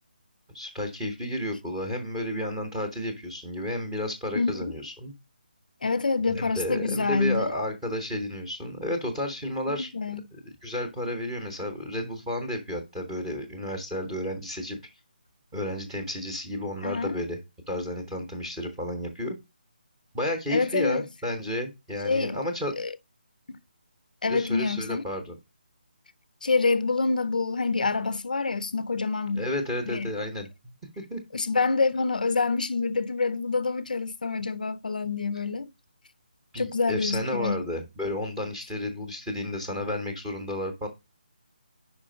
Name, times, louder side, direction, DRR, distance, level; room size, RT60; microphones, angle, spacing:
voice 1, 0.5-5.1 6.3-9.9 10.6-14.8 15.5-17.4 17.7-19.4 20.1-22.7 24.3-25.3 29.4-31.2 36.5-40.9, left 1 dB, 5° right, 0.8 m, -32 dB
voice 2, 4.3-4.8 5.8-7.5 9.7-10.3 16.8-17.1 20.5-21.1 22.0-22.4 22.8-22.9 24.2-25.0 26.4-29.5 29.9-30.1 31.3-35.7 36.6-37.6, left 4 dB, 55° left, 0.5 m, -27 dB
5.1 x 5.0 x 5.0 m
hypercardioid pair, 175°, 5 cm